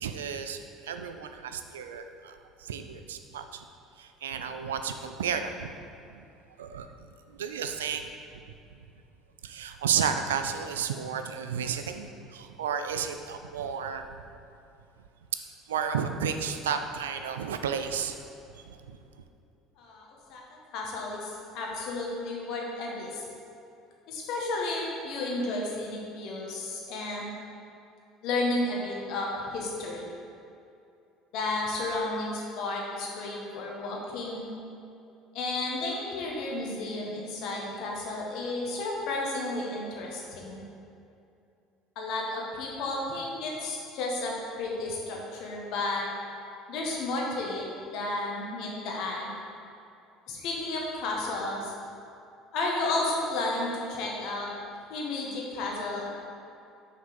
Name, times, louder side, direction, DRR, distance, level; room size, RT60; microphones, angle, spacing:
voice 1, 0.0-3.7 4.0-5.7 6.1-6.2 6.6-6.9 7.3-8.1 9.4-14.0 15.7-18.2 18.5-19.0, right 7 dB, 85° right, 7 dB, 0.4 m, -32 dB
voice 2, 19.8-20.4 20.7-23.2 24.1-27.3 28.2-30.1 31.3-34.4 35.3-40.6 41.9-46.0 46.7-49.3 50.3-51.7 52.5-54.5 54.9-56.1, left 2 dB, 65° left, -2 dB, 1.5 m, -32 dB
6.1 x 5.4 x 5.1 m, 2.6 s
hypercardioid pair, 65°, 0 cm